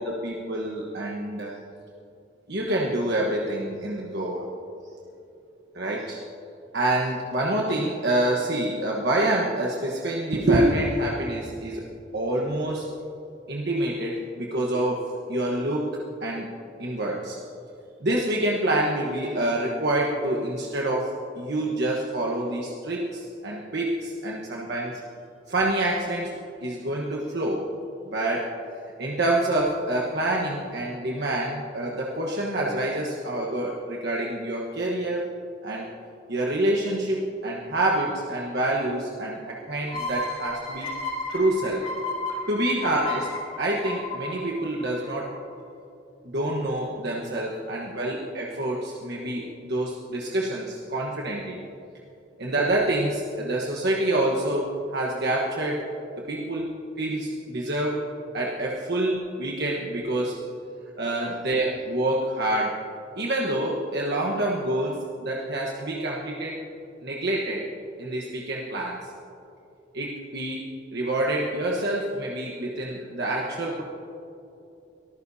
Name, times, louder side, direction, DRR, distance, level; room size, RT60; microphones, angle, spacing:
voice 1, 0.2-1.5 2.5-4.5 5.7-6.2 6.7-11.8 12.1-12.9 13.5-16.5 16.8-17.4 18.0-25.0 25.5-27.7 28.0-28.5 29.0-35.2 35.6-35.9 36.3-40.9 41.3-41.8 42.5-43.3 43.6-45.3 46.2-51.6 52.4-55.8 56.3-56.7 57.0-58.0 58.3-60.4 61.0-62.8 63.2-66.6 67.0-67.7 68.0-69.1 69.9-73.8, right 1 dB, 60° right, -2 dB, 1.2 m, -27 dB
sound 1, 39.9-45.4, left 2 dB, 35° left, 3.8 m, -33 dB
23.0 x 14.5 x 2.8 m, 2.8 s
head